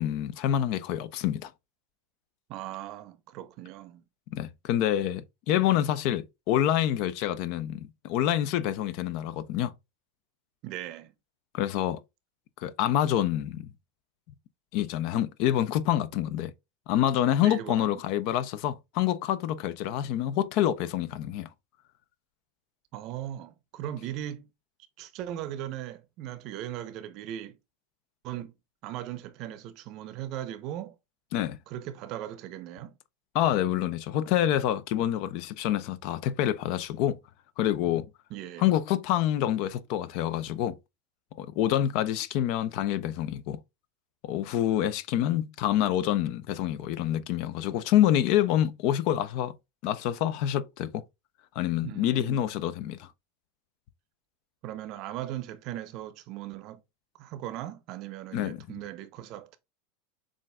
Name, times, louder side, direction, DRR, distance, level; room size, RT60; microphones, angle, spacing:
voice 1, 0.0-1.5 4.3-9.7 11.5-12.0 12.6-13.7 14.7-16.5 16.9-21.5 31.3-31.6 33.3-37.2 37.6-38.1 38.6-40.8 41.4-43.6 44.2-49.5 49.8-51.0 51.6-53.1 58.3-58.6, left 11 dB, 60° left, 0.4 m, -27 dB
voice 2, 2.5-4.0 10.6-11.1 17.4-18.0 22.9-24.5 25.0-27.6 28.2-28.6 28.8-30.9 31.7-33.0 38.3-38.7 51.8-52.4 54.6-56.8 57.2-59.6, right 12 dB, 50° right, 0.6 m, -38 dB
7.1 x 2.5 x 2.2 m
hypercardioid pair, 95°, 0 cm